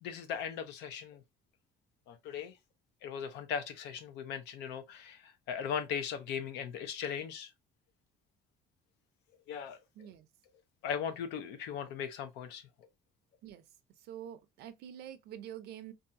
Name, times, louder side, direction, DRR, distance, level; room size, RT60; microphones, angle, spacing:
voice 1, 0.0-1.2 2.1-2.5 3.0-7.5 9.5-9.8 10.8-12.6, left 7 dB, 85° left, 0.6 m, -38 dB
voice 2, 9.9-10.3 13.4-13.6 14.0-15.9, right 10 dB, 70° right, 0.5 m, -46 dB
2.7 x 2.3 x 2.6 m
cardioid pair, 110°, 17 cm